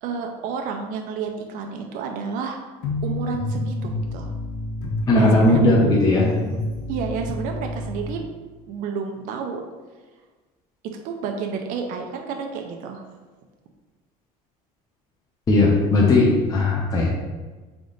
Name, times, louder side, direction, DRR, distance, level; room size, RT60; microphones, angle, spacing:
voice 1, 0.0-2.6 3.0-4.3 5.1-5.7 6.9-8.3 8.7-9.6 10.8-13.0, right 5 dB, 60° right, 3 dB, 0.5 m, -30 dB
sound 1, 2.8-8.1, left 2 dB, 75° left, 1.1 m, -29 dB
voice 2, 5.1-6.3 15.5-17.1, left 2 dB, 25° left, -4 dB, 0.7 m, -17 dB
3.7 x 3.5 x 3.9 m, 1.3 s
cardioid pair, 145°, 16 cm